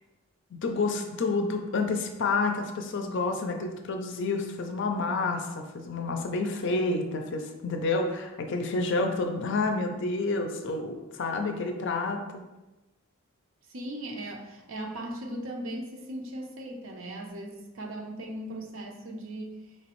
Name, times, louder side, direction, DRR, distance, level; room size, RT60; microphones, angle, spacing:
voice 1, 0.5-12.4, left 3 dB, 60° left, 5 dB, 0.5 m, -29 dB
voice 2, 13.7-19.7, right 1 dB, 70° right, 1 dB, 0.7 m, -38 dB
4.5 x 3.0 x 3.0 m, 1.1 s
head